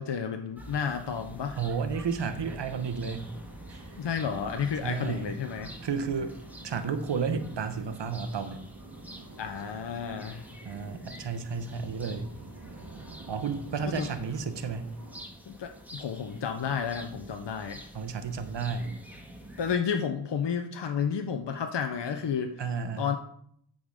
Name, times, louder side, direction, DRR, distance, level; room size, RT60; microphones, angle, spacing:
voice 1, 0.0-1.6 4.0-5.7 9.4-10.4 14.0-14.1 15.5-17.8 19.6-22.6 23.0-23.2, left 7 dB, 75° left, 6 dB, 0.8 m, -31 dB
sound 1, 0.6-19.8, equal, 5° right, 1.8 m, -47 dB
voice 2, 1.6-3.3 3.7-3.9 4.8-5.3 5.8-6.3 6.6-8.6 10.6-12.3 13.3-14.9 17.9-19.0 22.6-23.0, right 5 dB, 75° right, 9 dB, 1.0 m, -32 dB
sound 2, 2.3-15.2, right 2 dB, 45° right, 1.3 m, -49 dB
8.5 x 3.9 x 6.3 m, 0.66 s
cardioid pair, 55°, 43 cm